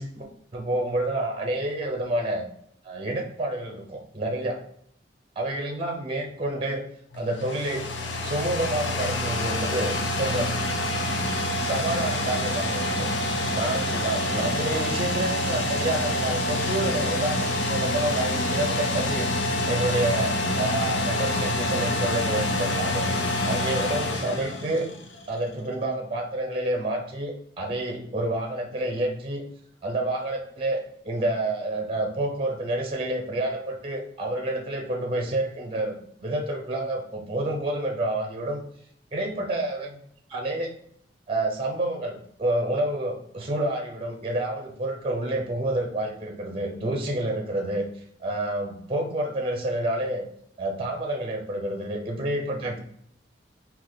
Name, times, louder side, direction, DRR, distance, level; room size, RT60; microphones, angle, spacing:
voice 1, 0.0-2.5 2.8-4.6 5.4-6.8 7.1-7.9 8.2-10.6 11.6-13.1 13.5-19.3 19.7-23.1 23.4-24.9 25.3-29.4 29.8-38.6 39.1-40.0 40.3-40.7 41.3-47.9 48.2-50.3 50.6-52.8, right 1 dB, 30° right, 2 dB, 0.6 m, -29 dB
sound 1, 7.1-25.3, left 1 dB, 85° left, 0.7 m, -27 dB
3.6 x 2.9 x 3.7 m, 0.67 s
head